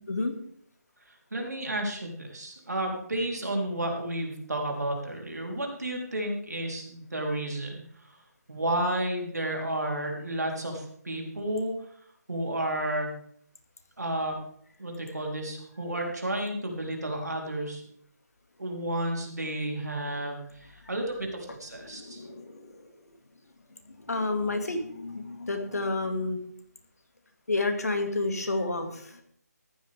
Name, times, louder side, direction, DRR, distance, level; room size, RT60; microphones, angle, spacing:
voice 1, 1.3-8.2 8.5-11.7 12.3-13.1 14.0-14.4 14.8-17.8 18.6-22.2, right 1 dB, 70° right, 1 dB, 3.7 m, -32 dB
voice 2, 21.8-22.9 24.0-26.4 27.5-29.2, left 2 dB, 60° left, 5 dB, 2.2 m, -30 dB
14.5 x 11.5 x 3.5 m, 0.64 s
figure-of-eight pair, 150°, 9 cm